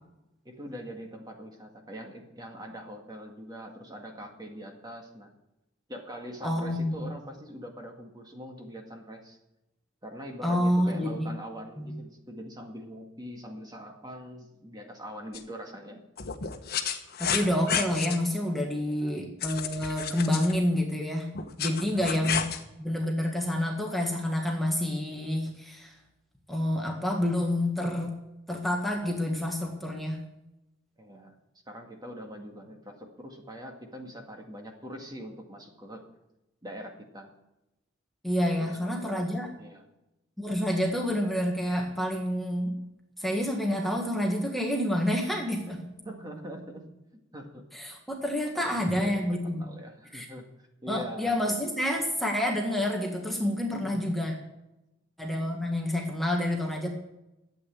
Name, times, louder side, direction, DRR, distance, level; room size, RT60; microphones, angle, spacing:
voice 1, 0.4-5.3 5.9-9.4 10.0-16.0 18.7-19.2 21.8-22.1 31.0-31.4 31.7-36.0 36.6-37.3 38.7-39.8 46.0-46.8 47.3-47.6 48.5-51.4 53.7-54.2, equal, 20° right, 2 dB, 2.0 m, -43 dB
voice 2, 6.4-7.1 10.4-11.3 11.8-11.9 17.2-21.3 21.6-22.5 22.8-25.9 26.5-28.1 28.5-30.2 38.2-39.5 40.4-42.8 43.2-45.9 47.7-49.6 50.1-50.3 50.9-54.3 55.2-56.9, left 1 dB, ahead, 0 dB, 1.7 m, -28 dB
sound 1, 15.3-15.4 16.2-18.2 19.4-20.6 21.3-22.6, left 7 dB, 50° left, 1.3 m, -31 dB
12.5 x 8.6 x 8.4 m, 0.95 s
head